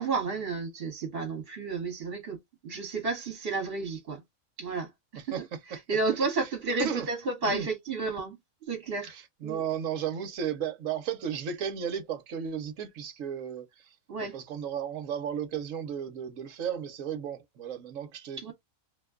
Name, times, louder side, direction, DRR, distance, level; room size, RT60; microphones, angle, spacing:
voice 1, 0.0-2.4 2.6-4.2 4.6-4.9 5.3-5.4 5.9-8.4 8.7-9.1 9.4-9.6 14.1-14.3 18.4-18.5, right 4 dB, 45° right, 1.4 m, -31 dB
voice 2, 5.2-5.8 6.4-6.5 6.8-7.1 7.5-7.7 9.0-18.5, right 8 dB, 65° right, 1.1 m, -34 dB
2.8 x 2.2 x 3.6 m
omnidirectional pair, 1.6 m